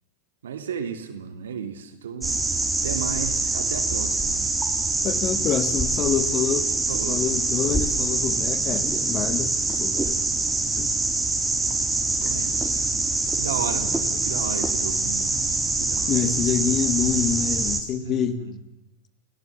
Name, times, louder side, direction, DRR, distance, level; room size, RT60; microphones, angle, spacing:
voice 1, 0.4-2.4 2.8-4.4 6.9-7.2 12.2-12.9 13.4-15.4 15.8-16.3 17.9-18.6, right 7 dB, 75° right, 8 dB, 2.9 m, -34 dB
sound 1, 2.2-17.8, right 3 dB, 10° right, 4.0 m, -25 dB
voice 2, 5.0-6.7 7.1-9.5 9.8-10.0 10.8-10.9 16.1-18.5, left 8 dB, 35° left, 12 dB, 2.2 m, -26 dB
29.0 x 18.0 x 7.4 m, 0.91 s
hypercardioid pair, 95°, 0 cm